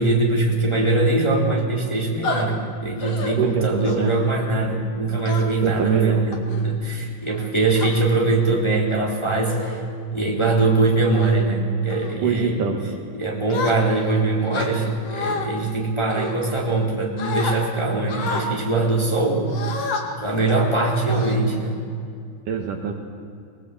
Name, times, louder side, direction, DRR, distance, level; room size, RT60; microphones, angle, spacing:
voice 1, 0.0-9.8 10.1-12.6 13.1-19.5 20.0-21.8, right 3 dB, 5° left, -2 dB, 3.1 m, -22 dB
sound 1, 2.2-2.4 3.0-3.3 3.8-4.2 5.2-5.7 6.3-6.6 7.3-7.9 8.7-8.9 9.5-9.8 10.3-10.6 11.0-11.4 11.9-12.2 13.5-14.1 14.5-15.5 16.1-16.9 17.2-17.6 18.1-18.5 19.5-20.0 20.5-20.6 21.1-21.8, left 4 dB, 45° left, 2.9 m, -30 dB
voice 2, 3.4-4.1 5.6-6.2 12.2-13.0 22.5-22.9, right 6 dB, 65° right, 3 dB, 2.6 m, -24 dB
22.5 x 21.5 x 8.5 m, 2.4 s
omnidirectional pair, 4.6 m